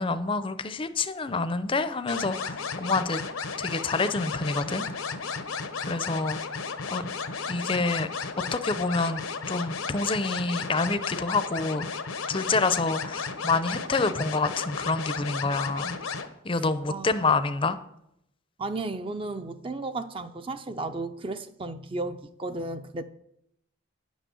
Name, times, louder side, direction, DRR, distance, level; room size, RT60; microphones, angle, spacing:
voice 1, 0.0-3.2 3.6-4.8 5.9-6.4 6.9-7.0 7.5-8.1 8.5-11.9 12.3-15.9 16.4-17.8, left 3 dB, 25° left, 12 dB, 0.5 m, -27 dB
sound 1, 2.1-16.3, left 5 dB, 90° left, 1.0 m, -34 dB
voice 2, 5.8-6.4 16.9-17.1 18.6-23.0, right 2 dB, 25° right, 9 dB, 0.4 m, -34 dB
9.9 x 6.2 x 6.9 m, 0.77 s
head